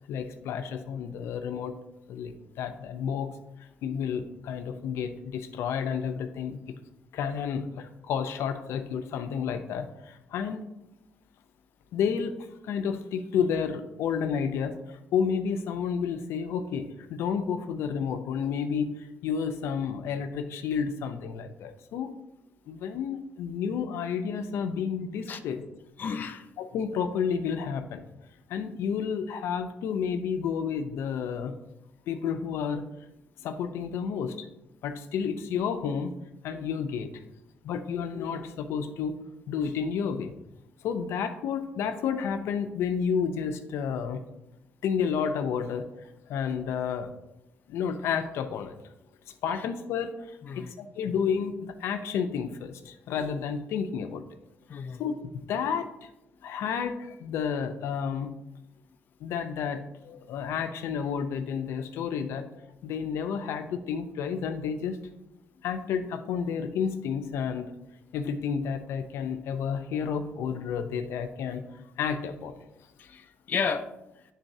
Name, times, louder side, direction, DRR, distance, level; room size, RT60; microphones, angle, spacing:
voice 1, 0.1-1.8 2.1-3.3 3.8-6.6 7.1-10.6 11.9-12.3 12.6-22.1 22.7-25.6 26.6-28.0 28.5-31.5 32.1-32.9 33.4-34.5 34.8-36.1 36.4-37.1 37.6-39.2 39.5-40.3 40.8-44.2 44.8-45.9 46.3-47.1 47.7-48.8 49.3-54.2 55.0-55.1 55.5-56.1 56.4-58.3 59.2-62.5 62.8-65.1 65.6-67.7 68.1-71.6 72.0-72.6, left 7 dB, 85° left, 7 dB, 0.6 m, -31 dB
voice 2, 26.0-26.5 49.5-49.6 50.4-50.7 54.7-55.0 73.0-73.9, left 6 dB, 45° left, 7 dB, 0.4 m, -32 dB
10.0 x 3.9 x 2.7 m, 0.91 s
cardioid pair, 120°, 4 cm